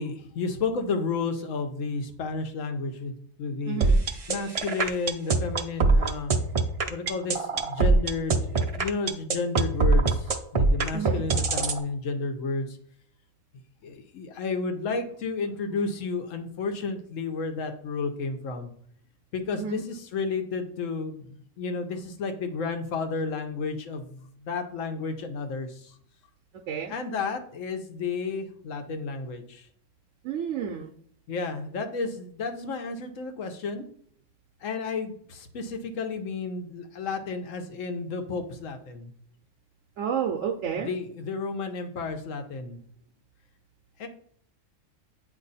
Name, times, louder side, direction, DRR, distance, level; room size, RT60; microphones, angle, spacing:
voice 1, 0.0-6.3 6.9-12.8 13.8-18.7 19.3-25.9 26.9-29.7 31.3-33.8 34.6-39.1 40.8-42.8 44.0-44.1, left 4 dB, 85° left, 6 dB, 1.2 m, -32 dB
voice 2, 3.7-4.0 10.9-11.2 19.5-19.8 26.7-26.9 30.2-30.9 40.0-40.9, right 8 dB, 80° right, 2 dB, 1.0 m, -30 dB
sound 1, 3.8-11.8, right 4 dB, 50° right, 0.4 m, -22 dB
8.5 x 2.9 x 4.0 m, 0.62 s
omnidirectional pair, 1.3 m